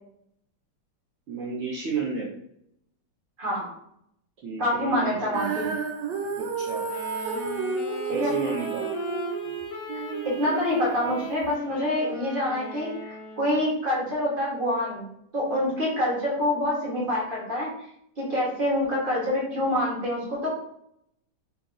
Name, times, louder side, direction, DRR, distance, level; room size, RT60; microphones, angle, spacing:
voice 1, 1.3-2.3 4.4-5.4 6.4-6.8 8.1-8.9, right 5 dB, 60° right, -5 dB, 0.8 m, -32 dB
voice 2, 4.6-5.7 8.2-8.3 10.4-17.7 18.2-20.5, left 1 dB, 35° right, -4 dB, 1.3 m, -26 dB
Female singing, 5.3-11.6, right 5 dB, 80° right, 1.3 m, -32 dB
Wind instrument woodwind instrument, 6.8-13.7, left 1 dB, 65° left, 0.7 m, -36 dB
3.0 x 2.8 x 3.7 m, 0.74 s
omnidirectional pair, 2.0 m